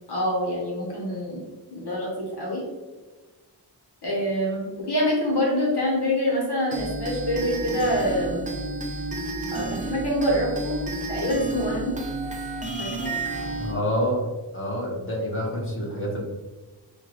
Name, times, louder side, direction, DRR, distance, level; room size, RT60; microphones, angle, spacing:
voice 1, 0.1-1.4 1.7-2.6 4.0-8.4 9.5-10.8 11.1-11.9 12.8-13.1, equal, 80° left, -3 dB, 1.1 m, -26 dB
sound 1, 6.7-13.7, right 2 dB, 20° right, 0.5 m, -31 dB
voice 2, 13.6-14.3 14.5-16.2, equal, 30° left, -2 dB, 1.1 m, -27 dB
5.5 x 2.3 x 3.2 m, 1.2 s
wide cardioid pair, 115°, 40 cm